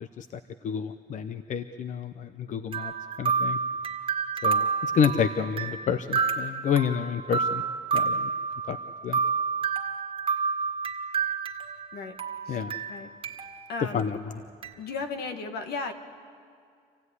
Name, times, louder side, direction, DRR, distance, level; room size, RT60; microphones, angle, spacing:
voice 1, 0.2-2.9 3.2-3.6 4.4-7.6 7.9-8.3 8.7-8.8 9.0-9.2 12.5-12.7 13.9-14.4, left 7 dB, 45° left, 11 dB, 0.7 m, -29 dB
sound 1, 2.7-11.9 12.2-13.6 14.0-14.1 14.6-14.7, right 5 dB, 30° right, 1.8 m, -29 dB
voice 2, 13.7-14.2 14.8-15.9, left 4 dB, 70° left, 7 dB, 1.8 m, -35 dB
26.5 x 16.0 x 9.7 m, 2.3 s
cardioid pair, 110°, 17 cm